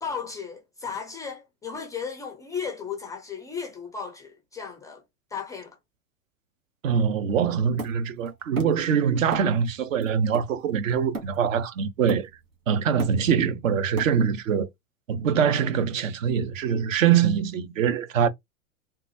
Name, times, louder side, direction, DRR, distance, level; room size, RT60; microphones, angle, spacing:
voice 1, 0.0-5.0 5.3-5.8, left 6 dB, 10° left, 0.3 m, -35 dB
voice 2, 6.8-12.3 12.7-14.7 15.1-18.3, right 7 dB, 70° right, 0.8 m, -23 dB
Hammer, 7.8-8.9 9.3-9.7 10.0-11.6 12.1-12.5 12.8-14.5, right 3 dB, 85° right, 1.3 m, -37 dB
3.7 x 2.3 x 2.7 m
figure-of-eight pair, 95°, 41 cm